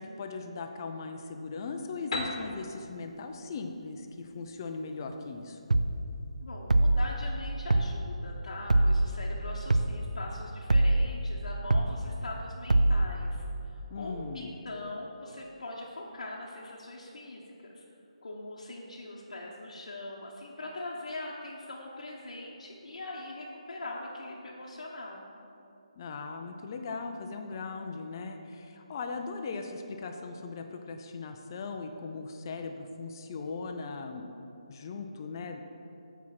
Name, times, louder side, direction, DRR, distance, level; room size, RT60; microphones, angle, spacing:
voice 1, 0.0-5.6 13.9-14.5 26.0-34.3 34.7-35.6, left 4 dB, 35° left, 5 dB, 0.6 m, -39 dB
Piano, 2.1-5.8, left 2 dB, 50° left, 1.2 m, -40 dB
sound 1, 5.7-5.9 6.7-7.1 7.7-7.9 8.7-9.1 9.7-9.9 10.7-11.1 11.7-11.9 12.7-13.1, right 2 dB, 90° right, 0.5 m, -22 dB
voice 2, 6.4-17.8 18.2-25.2, left 2 dB, 70° left, -4 dB, 1.1 m, -42 dB
8.3 x 4.6 x 5.9 m, 2.7 s
figure-of-eight pair, 155°, 4 cm